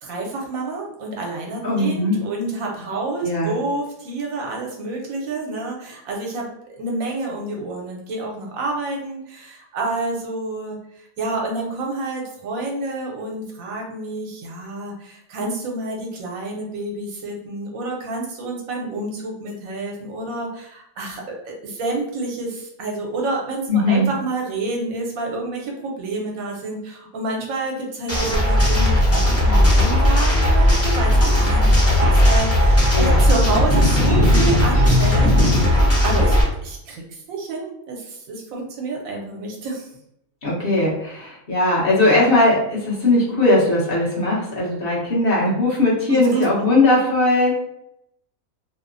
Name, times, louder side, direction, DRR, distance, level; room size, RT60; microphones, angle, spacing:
voice 1, 0.0-39.9 46.3-46.4, right 2 dB, 75° right, 0 dB, 1.1 m, -29 dB
voice 2, 1.6-2.2 3.2-3.5 23.7-24.1 32.9-33.2 40.4-47.5, left 2 dB, 50° left, -5 dB, 0.9 m, -19 dB
sound 1, 28.1-36.4, left 1 dB, 15° left, 0.5 m, -16 dB
2.8 x 2.0 x 2.5 m, 0.77 s
omnidirectional pair, 1.5 m